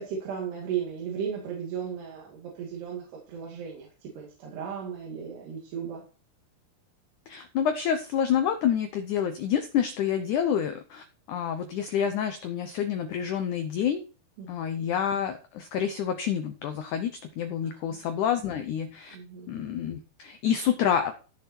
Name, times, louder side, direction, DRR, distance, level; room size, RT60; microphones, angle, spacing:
voice 1, 0.0-6.0 14.4-14.9 17.6-18.1 19.1-19.5, right 7 dB, 85° right, -2 dB, 4.4 m, -36 dB
voice 2, 7.3-14.0 14.5-19.2 19.5-21.1, left 8 dB, 80° left, 8 dB, 1.8 m, -28 dB
15.0 x 6.7 x 4.4 m, 0.36 s
omnidirectional pair, 4.6 m